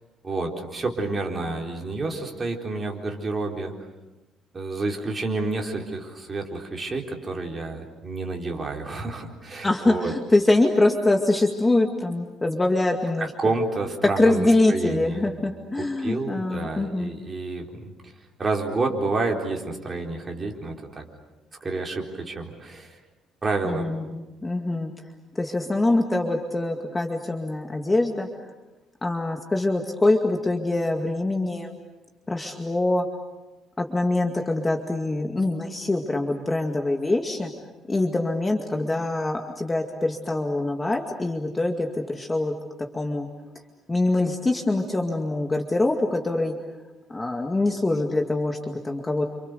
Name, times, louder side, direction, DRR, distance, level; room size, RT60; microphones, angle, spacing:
voice 1, 0.2-3.7 4.5-10.1 13.2-15.3 15.7-17.9 18.4-21.0 21.6-23.0 23.4-23.9, right 3 dB, 20° right, 1 dB, 4.1 m, -29 dB
voice 2, 9.6-13.3 14.2-17.1 23.6-24.9 25.4-28.3 29.0-31.7 32.3-33.1 33.8-37.5 37.9-42.5 42.9-43.3 43.9-46.5 47.1-49.2, left 2 dB, 15° left, 3 dB, 2.2 m, -24 dB
30.0 x 27.5 x 6.8 m, 1.1 s
cardioid pair, 140°, 0 cm